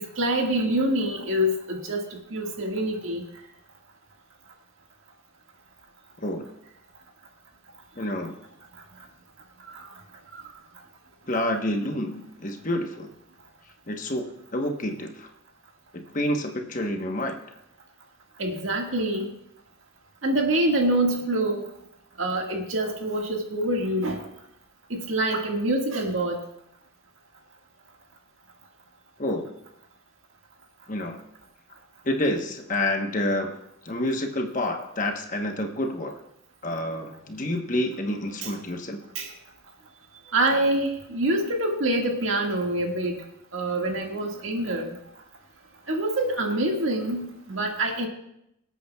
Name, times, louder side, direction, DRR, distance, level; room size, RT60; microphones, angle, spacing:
voice 1, 0.2-2.0 2.3-3.2 18.4-19.3 20.2-21.6 22.2-24.2 24.9-26.4 38.4-38.5 39.2-39.3 40.3-43.1 43.5-44.9 45.9-48.1, right 1 dB, 75° right, 1 dB, 1.8 m, -25 dB
voice 2, 8.0-8.4 11.3-13.1 13.9-15.3 15.9-17.4 29.2-29.5 30.9-31.2 32.0-33.6 33.8-36.2 36.6-39.0, left 1 dB, 40° left, 4 dB, 1.0 m, -28 dB
24.5 x 8.3 x 2.3 m, 0.78 s
head